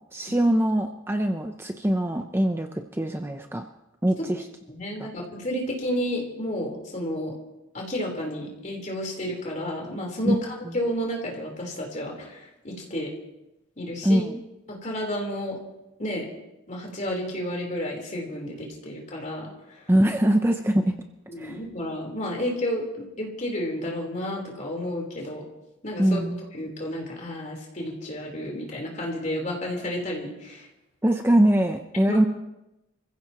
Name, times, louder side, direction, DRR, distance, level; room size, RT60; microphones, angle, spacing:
voice 1, 0.1-3.7 4.0-4.4 5.0-5.1 10.3-10.4 14.0-14.4 19.9-20.9 21.4-21.6 26.0-26.4 31.0-32.2, right 1 dB, 10° right, 5 dB, 0.6 m, -22 dB
voice 2, 4.7-7.4 7.7-13.1 13.8-14.2 14.7-15.6 16.0-16.3 16.7-19.9 21.3-25.4 25.8-26.2 26.5-30.7 32.1-32.2, equal, 35° left, 0 dB, 3.9 m, -31 dB
27.5 x 15.5 x 3.0 m, 0.94 s
head